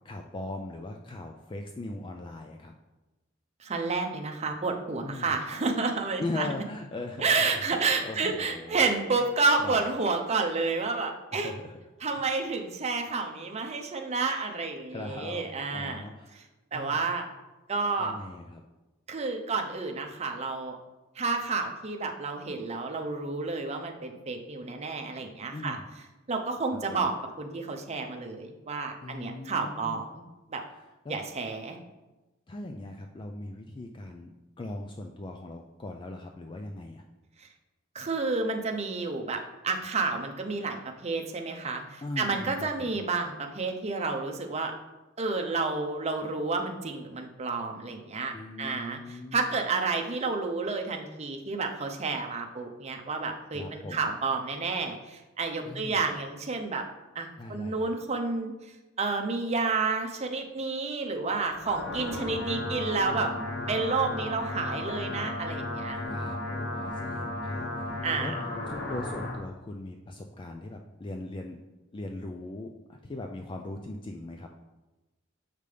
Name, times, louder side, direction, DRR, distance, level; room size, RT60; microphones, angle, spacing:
voice 1, 0.0-2.7 5.0-5.4 6.2-8.8 9.6-9.8 11.3-11.8 12.2-12.3 14.9-16.5 16.7-17.0 18.0-18.6 25.5-25.9 26.9-27.1 29.0-30.0 30.8-31.2 32.5-37.0 42.0-43.0 48.3-49.5 53.5-54.2 55.6-56.0 57.4-57.9 62.1-63.8 65.9-68.3 68.7-71.6 71.9-74.5, left 2 dB, 25° left, 3 dB, 0.3 m, -40 dB
voice 2, 3.6-6.5 7.2-11.5 12.0-16.0 16.7-17.2 17.7-18.1 19.1-20.8 21.2-25.8 26.3-27.1 27.4-30.2 30.5-30.6 31.1-31.8 37.4-37.5 37.9-39.4 39.6-40.8 41.0-44.7 45.2-48.3 48.6-56.8 57.1-58.5 59.0-63.3 63.7-66.0 68.0-68.3, right 4 dB, 35° right, 3 dB, 0.6 m, -30 dB
sound 1, 61.4-69.4, left 1 dB, 55° left, 1.1 m, -35 dB
6.6 x 5.3 x 3.3 m, 1.1 s
head